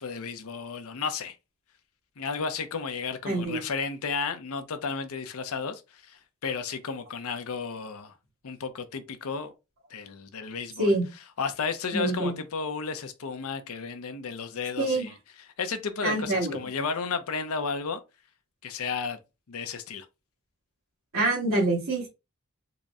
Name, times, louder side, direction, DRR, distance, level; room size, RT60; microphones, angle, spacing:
voice 1, 0.0-1.4 2.2-8.1 8.4-9.5 9.9-11.0 11.4-18.0 18.6-19.2 19.5-20.1, left 5 dB, 80° left, 0.6 m, -33 dB
voice 2, 3.2-3.6 10.8-11.0 11.9-12.3 14.8-15.1 16.0-16.6 21.1-22.1, right 2 dB, 75° right, 1.5 m, -25 dB
3.9 x 2.0 x 3.5 m
head